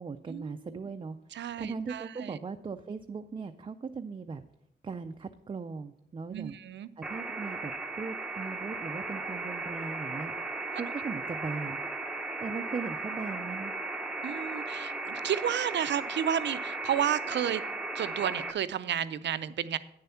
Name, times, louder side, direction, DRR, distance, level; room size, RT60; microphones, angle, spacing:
voice 1, 0.0-1.2 1.6-4.4 4.8-6.6 7.0-10.3 10.7-11.8 12.4-13.7, right 5 dB, 30° right, 7 dB, 0.4 m, -38 dB
voice 2, 1.3-2.4 6.3-6.9 14.2-17.6 17.9-19.8, right 9 dB, 80° right, 14 dB, 0.5 m, -31 dB
sound 1, 7.0-18.5, right 2 dB, 5° right, 0.7 m, -36 dB
9.5 x 6.9 x 5.6 m, 0.78 s
wide cardioid pair, 140°, 18 cm